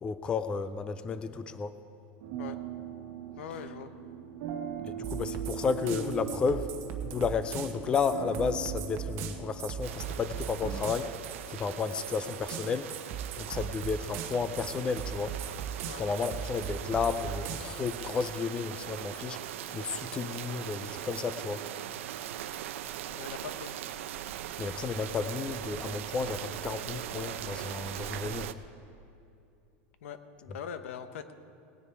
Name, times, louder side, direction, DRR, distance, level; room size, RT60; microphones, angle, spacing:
voice 1, 0.0-1.7 4.9-6.7 7.0-11.2 11.5-12.9 13.4-15.3 16.0-19.4 19.7-21.6 24.6-28.5, left 5 dB, 15° left, 12 dB, 0.4 m, -32 dB
sound 1, 2.2-10.8, right 8 dB, 55° right, 1.3 m, -41 dB
voice 2, 3.4-3.9 15.8-16.0 23.1-23.7 30.0-31.3, left 8 dB, 90° left, 10 dB, 1.0 m, -42 dB
sound 2, 5.0-18.2, right 8 dB, 35° right, 1.0 m, -39 dB
sound 3, 9.8-28.5, right 11 dB, 85° right, 0.6 m, -40 dB
19.5 x 9.7 x 4.7 m, 2.6 s
supercardioid pair, 165°, 7 cm